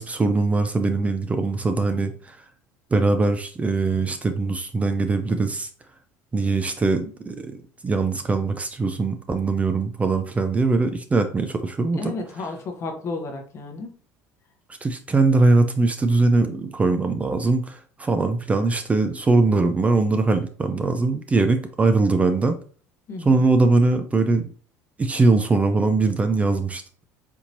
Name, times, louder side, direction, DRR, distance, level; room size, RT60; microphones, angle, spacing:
voice 1, 0.0-2.4 2.9-5.7 6.3-7.5 7.8-12.1 14.8-22.6 23.2-24.5 25.0-27.0, right 3 dB, 20° right, 8 dB, 0.4 m, -21 dB
voice 2, 11.9-14.0 23.1-23.4, left 3 dB, 45° left, 4 dB, 0.8 m, -32 dB
4.4 x 2.8 x 2.6 m, 0.42 s
supercardioid pair, 105°, 7 cm